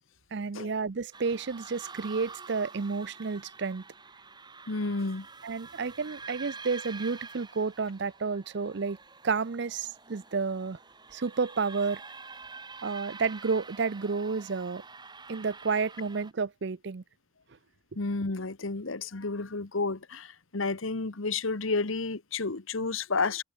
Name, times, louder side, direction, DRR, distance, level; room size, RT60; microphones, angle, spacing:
voice 1, 0.3-3.8 5.4-9.0 9.2-10.8 11.1-12.0 12.8-14.8 15.3-17.0, right 4 dB, 55° right, 0.5 m, -31 dB
sound 1, 1.1-16.3, right 4 dB, 20° right, 2.9 m, -47 dB
voice 2, 4.7-5.3 17.9-23.4, left 3 dB, 75° left, 1.2 m, -31 dB
head